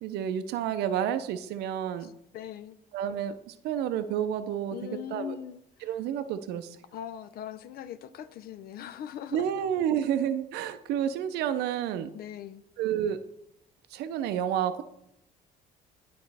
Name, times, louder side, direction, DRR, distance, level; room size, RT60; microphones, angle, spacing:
voice 1, 0.0-2.1 2.9-4.8 5.1-5.3 5.8-6.8 9.3-12.1 12.8-13.2 13.9-14.8, right 9 dB, 80° right, 0.5 m, -30 dB
voice 2, 2.0-2.8 4.7-6.0 6.9-9.5 12.1-12.6, left 9 dB, 65° left, 0.5 m, -41 dB
9.4 x 5.1 x 3.4 m
cardioid pair, 110°, 17 cm